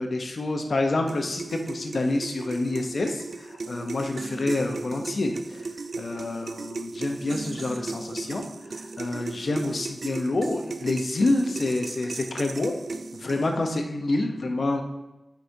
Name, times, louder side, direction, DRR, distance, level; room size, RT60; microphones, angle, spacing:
voice 1, 0.0-12.8 13.1-14.8, left 2 dB, 70° left, 4 dB, 0.7 m, -28 dB
sound 1, 1.1-13.7, right 3 dB, 70° right, 0.3 m, -36 dB
8.3 x 4.8 x 2.7 m, 0.98 s
cardioid pair, 55°, 0 cm